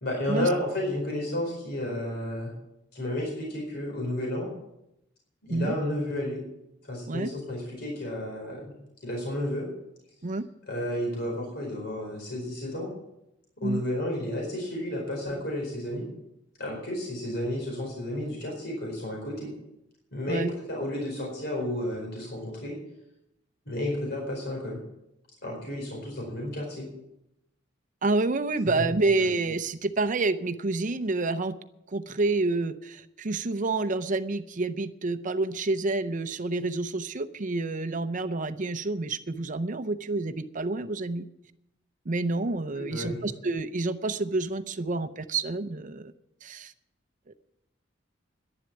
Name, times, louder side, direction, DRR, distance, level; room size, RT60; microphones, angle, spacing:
voice 1, 0.0-2.5 2.9-4.5 5.4-6.4 6.8-8.7 9.0-9.7 10.7-12.9 13.6-16.1 16.6-19.5 20.1-22.8 23.7-24.8 25.4-26.9 28.7-28.8 29.2-29.3 42.7-43.2, left 1 dB, 60° left, -1 dB, 4.6 m, -32 dB
voice 2, 28.0-31.6 31.9-41.3 42.1-46.1 46.4-46.7 47.3-47.4, right 3 dB, 45° right, 11 dB, 0.6 m, -28 dB
11.0 x 11.0 x 7.2 m, 0.84 s
head